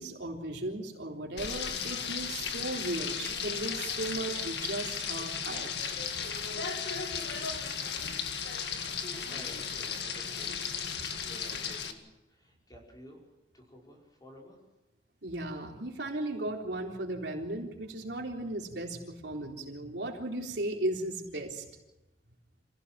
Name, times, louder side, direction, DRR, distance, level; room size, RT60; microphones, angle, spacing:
voice 1, 0.0-5.9 15.2-21.6, right 1 dB, 75° right, 0 dB, 3.8 m, -36 dB
Frying (food), 1.4-11.9, left 6 dB, 70° left, 2.0 m, -35 dB
voice 2, 8.4-12.0 12.3-13.2 13.5-14.6, equal, 20° left, -1 dB, 5.8 m, -52 dB
26.0 x 16.5 x 7.6 m, 0.99 s
head